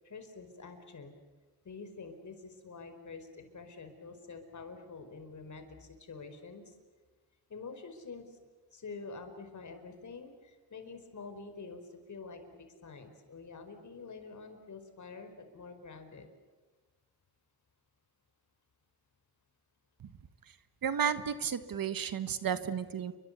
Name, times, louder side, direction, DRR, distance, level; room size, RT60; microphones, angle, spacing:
voice 1, 0.0-1.2 1.6-6.8 7.5-8.4 8.7-16.3, left 4 dB, 45° left, 7 dB, 4.9 m, -47 dB
voice 2, 20.8-23.1, right 7 dB, 55° right, 12 dB, 1.5 m, -32 dB
29.5 x 23.5 x 8.2 m, 1.3 s
cardioid pair, 95°, 41 cm